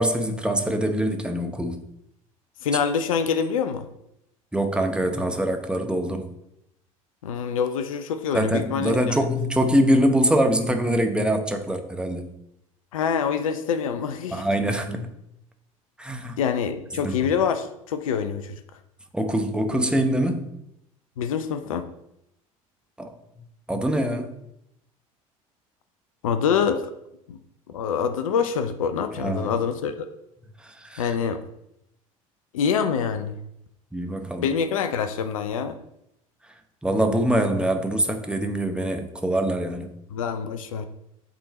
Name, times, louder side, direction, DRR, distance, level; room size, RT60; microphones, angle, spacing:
voice 1, 0.0-1.8 4.5-6.3 8.3-12.3 14.3-15.1 16.0-16.4 17.0-17.3 19.1-20.5 23.0-23.1 23.7-24.3 29.2-29.5 30.6-31.1 33.9-34.5 36.8-39.9, right 1 dB, 5° right, 5 dB, 0.8 m, -24 dB
voice 2, 2.6-3.8 7.2-9.2 12.9-14.5 16.4-18.6 21.2-21.8 26.2-26.9 27.3-27.4 27.7-30.1 31.0-31.4 32.5-33.4 34.4-35.8 40.1-40.9, left 7 dB, 70° left, 9 dB, 0.5 m, -25 dB
8.2 x 3.7 x 4.1 m, 0.81 s
figure-of-eight pair, 65°, 18 cm